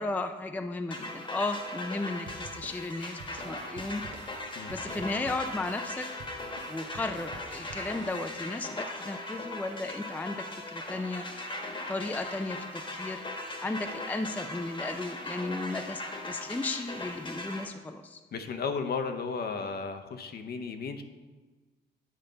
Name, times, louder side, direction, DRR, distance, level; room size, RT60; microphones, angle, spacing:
voice 1, 0.0-4.0 4.7-6.1 6.7-11.3 11.9-13.2 13.6-18.2, left 2 dB, 10° left, 7 dB, 0.4 m, -35 dB
sound 1, 0.9-17.7, left 1 dB, 25° left, 1.2 m, -39 dB
sound 2, 2.3-8.7, right 4 dB, 65° right, 0.9 m, -49 dB
voice 2, 18.3-21.0, left 5 dB, 50° left, 7 dB, 0.7 m, -34 dB
8.8 x 5.1 x 3.9 m, 1.3 s
cardioid pair, 90°, 20 cm